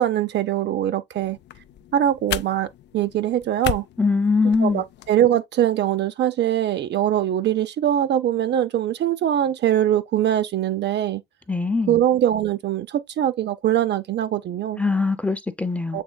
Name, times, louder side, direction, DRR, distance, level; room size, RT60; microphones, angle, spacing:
voice 1, 0.0-1.4 1.9-3.8 4.6-11.2 11.9-14.8 15.9-16.0, right 11 dB, 60° right, 0.5 m, -22 dB
sound 1, 1.2-5.2, left 12 dB, 60° left, 0.4 m, -34 dB
voice 2, 4.0-4.8 11.5-12.0 14.8-16.0, left 4 dB, 5° left, 0.6 m, -22 dB
7.4 x 3.1 x 2.3 m
cardioid pair, 90°, 20 cm